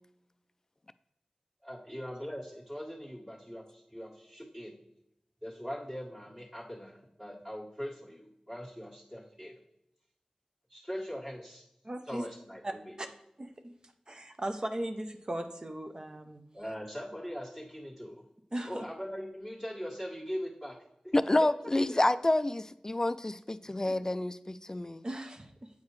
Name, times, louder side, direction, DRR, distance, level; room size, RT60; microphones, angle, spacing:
voice 1, 1.6-4.8 5.4-9.6 10.7-11.6 12.1-12.9 16.5-18.2 18.7-20.8 21.0-21.1, equal, 15° right, -7 dB, 1.7 m, -41 dB
voice 2, 11.8-12.3 12.6-13.1 13.4-13.7 14.1-16.4 18.5-18.8 23.9-24.0 25.0-25.7, right 1 dB, 35° right, 6 dB, 0.7 m, -38 dB
voice 3, 21.1-25.0, left 1 dB, 25° left, 13 dB, 0.3 m, -28 dB
8.3 x 4.6 x 3.2 m, 0.82 s
wide cardioid pair, 55°, 2 cm